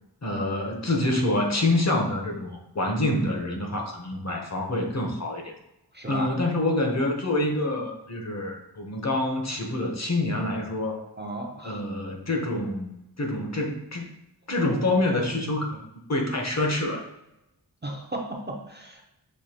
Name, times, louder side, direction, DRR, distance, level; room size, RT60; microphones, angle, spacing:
voice 1, 0.2-5.5 6.1-11.0 11.6-12.9 13.2-14.1 14.5-17.0, left 1 dB, 40° left, 1 dB, 0.9 m, -26 dB
voice 2, 5.9-6.3 11.2-11.8 17.8-19.0, right 2 dB, 25° right, 0 dB, 0.6 m, -35 dB
6.4 x 2.8 x 2.8 m, 0.91 s
wide cardioid pair, 85°, 42 cm